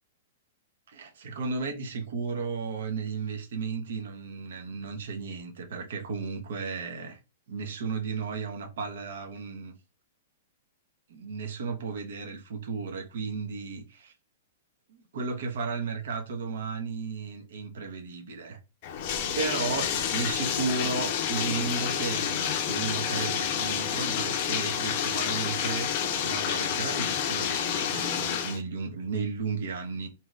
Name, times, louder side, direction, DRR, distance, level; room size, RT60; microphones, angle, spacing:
voice 1, 0.9-7.2 7.5-9.7 11.1-14.1 14.9-18.6 19.3-30.1, right 4 dB, 70° right, 0.8 m, -34 dB
Bathtub (filling or washing), 18.8-28.6, left 8 dB, 45° left, 0.5 m, -29 dB
2.7 x 2.4 x 3.1 m
hypercardioid pair, 155°, 0 cm